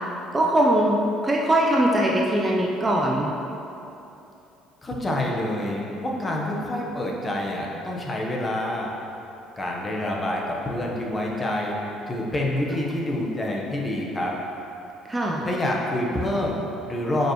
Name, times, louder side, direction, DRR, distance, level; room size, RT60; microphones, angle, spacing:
voice 1, 0.3-1.0 1.2-3.3 15.1-15.4, right 1 dB, 15° right, -2 dB, 0.6 m, -21 dB
voice 2, 4.8-8.9 9.6-11.8 12.1-14.3 15.4-17.3, left 1 dB, 20° left, -2 dB, 1.1 m, -27 dB
9.3 x 5.2 x 3.1 m, 2.9 s
cardioid pair, 110°, 0 cm